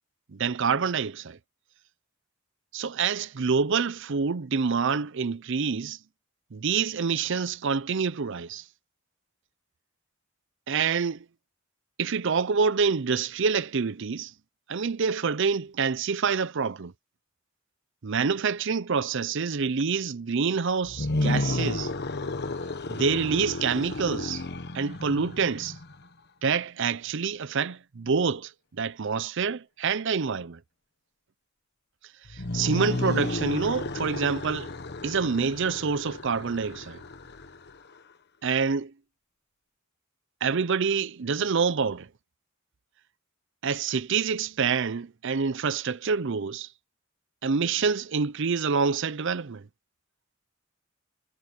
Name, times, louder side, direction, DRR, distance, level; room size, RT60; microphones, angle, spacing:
voice 1, 0.3-1.4 2.7-6.0 6.5-8.6 10.7-11.2 12.0-14.3 14.7-16.9 18.0-21.9 22.9-24.4 24.7-25.8 26.4-28.5 28.8-30.6 32.3-34.7 35.0-37.0 38.4-38.9 40.4-42.1 43.6-46.7 47.4-49.6, right 5 dB, 65° right, 0.6 m, -27 dB
sound 1, 20.8-26.0 32.3-37.9, left 2 dB, 55° left, 1.2 m, -32 dB
head